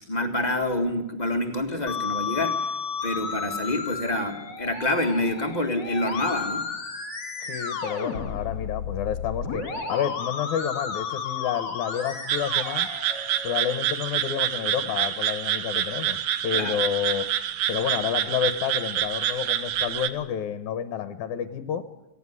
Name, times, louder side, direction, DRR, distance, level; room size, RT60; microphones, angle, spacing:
voice 1, 0.1-2.6 3.0-6.7 16.5-16.8, left 1 dB, 20° left, 4 dB, 1.1 m, -27 dB
Musical instrument, 1.9-13.8, left 5 dB, 35° left, 2.4 m, -33 dB
voice 2, 7.4-12.9 13.4-17.3 17.7-21.9, left 9 dB, 70° left, 11 dB, 2.2 m, -29 dB
sound 1, 12.3-20.1, right 11 dB, 70° right, 2.3 m, -27 dB
18.0 x 16.5 x 9.7 m, 0.93 s
omnidirectional pair, 3.9 m